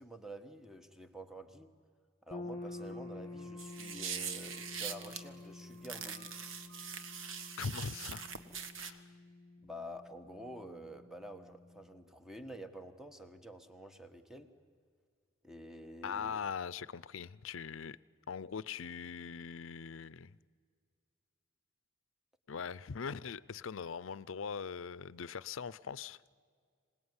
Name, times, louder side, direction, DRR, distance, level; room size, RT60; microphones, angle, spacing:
voice 1, 0.0-1.7 2.2-6.3 9.6-14.5 15.4-16.4, right 1 dB, ahead, 1.3 m, -49 dB
sound 1, 2.3-12.1, left 2 dB, 35° left, 0.8 m, -49 dB
sound 2, 2.5-7.5, right 1 dB, 45° right, 3.8 m, -62 dB
sound 3, 3.6-5.2 5.8-8.9, right 7 dB, 75° right, 1.5 m, -42 dB
voice 2, 7.6-8.2 8.8-9.1 16.0-18.0 18.3-20.4 22.5-26.2, left 6 dB, 80° left, 0.6 m, -41 dB
26.0 x 19.0 x 9.7 m
head